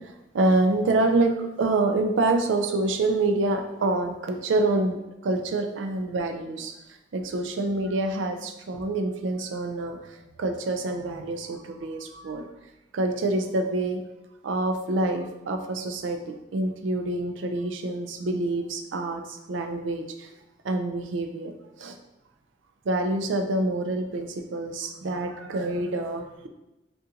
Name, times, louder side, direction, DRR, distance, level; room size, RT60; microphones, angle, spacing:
voice 1, 0.3-6.7 7.1-12.5 12.9-14.0 14.4-20.3 20.6-21.5 21.8-21.9 22.9-26.5, right 2 dB, 75° right, 6 dB, 0.4 m, -27 dB
3.6 x 2.5 x 2.8 m, 0.97 s
head